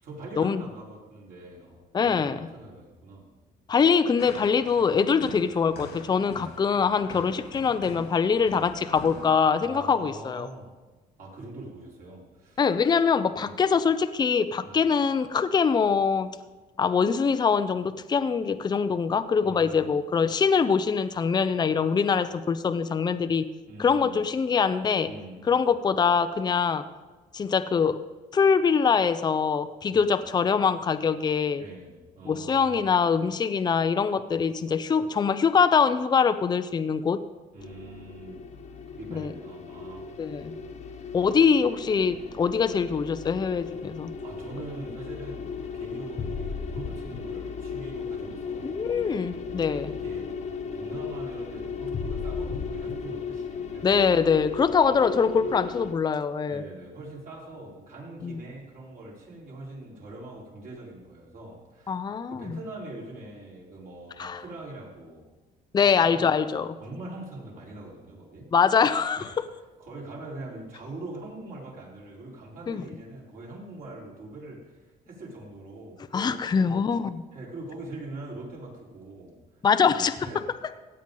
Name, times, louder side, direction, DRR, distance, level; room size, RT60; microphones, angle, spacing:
voice 1, 0.0-3.3 7.1-7.3 9.6-10.7 11.2-12.6 13.5-13.6 14.6-14.9 19.4-20.0 23.7-24.2 25.0-25.6 29.9-30.1 31.6-32.9 37.5-38.4 38.9-40.6 40.8-41.1 44.2-49.1 50.0-50.3 50.7-54.0 56.5-61.9 62.3-65.2 65.8-66.3 66.8-68.5 69.2-69.4 69.8-76.8 77.3-79.4 80.2-80.5, right 2 dB, 55° right, -4 dB, 4.1 m, -43 dB
voice 2, 1.9-2.5 3.7-10.5 12.6-16.3 16.8-23.5 23.8-25.1 25.5-26.8 27.3-28.0 28.3-31.6 32.2-37.2 39.1-39.3 40.2-40.6 41.1-44.1 48.6-49.9 53.8-56.6 58.2-58.4 61.9-62.6 64.2-64.4 65.7-66.8 68.5-69.3 72.7-72.8 76.1-77.2 79.6-80.3, left 6 dB, 25° left, 11 dB, 0.5 m, -23 dB
sound 1, 4.2-9.4, left 4 dB, 85° left, 2.2 m, -44 dB
sound 2, 37.6-55.9, left 5 dB, 40° left, 1.2 m, -36 dB
16.0 x 9.1 x 3.9 m, 1.2 s
cardioid pair, 110°, 17 cm